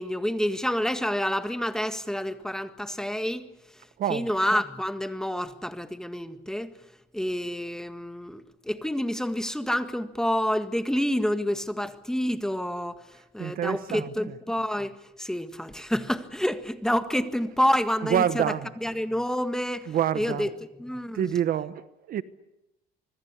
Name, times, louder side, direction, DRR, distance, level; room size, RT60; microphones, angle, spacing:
voice 1, 0.0-3.5 4.1-6.7 7.1-18.5 18.8-20.5 20.8-21.3, equal, 5° left, 1.7 m, -28 dB
voice 2, 13.4-14.1 18.0-18.7 19.9-20.5 21.1-22.2, right 10 dB, 60° right, 1.1 m, -27 dB
26.0 x 21.5 x 8.3 m
cardioid pair, 110°, 17 cm